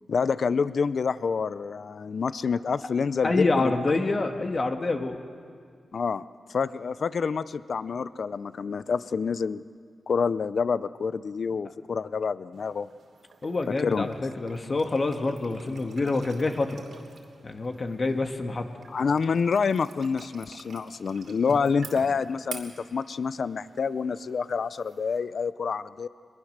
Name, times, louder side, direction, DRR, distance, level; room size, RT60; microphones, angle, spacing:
voice 1, 0.1-3.7 5.9-6.2 6.5-9.6 10.1-12.9 13.8-14.1 18.9-26.1, left 5 dB, 65° left, 16 dB, 0.5 m, -27 dB
voice 2, 3.2-5.2 13.4-16.8 17.4-18.7 21.5-21.6, left 3 dB, 40° left, 5 dB, 1.6 m, -27 dB
sound 1, 12.5-25.2, right 4 dB, 75° right, 2.8 m, -48 dB
23.5 x 21.5 x 6.6 m, 2.1 s
cardioid pair, 85°, 0 cm